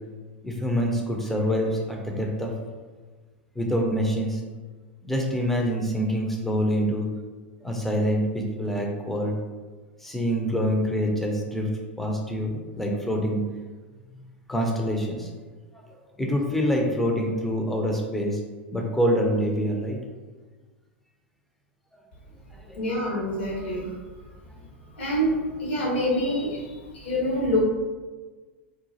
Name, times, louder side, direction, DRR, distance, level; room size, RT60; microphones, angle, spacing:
voice 1, 0.4-2.5 3.6-4.4 5.0-7.1 7.6-9.4 10.0-11.7 12.0-13.4 14.5-15.3 15.7-15.8 16.2-18.4 18.7-20.0 22.6-22.8, equal, 5° left, 0 dB, 0.5 m, -26 dB
voice 2, 22.7-23.9 25.0-26.6 26.9-27.6, equal, 65° left, -3 dB, 1.2 m, -26 dB
3.8 x 2.4 x 2.7 m, 1.3 s
figure-of-eight pair, 90°, 6 cm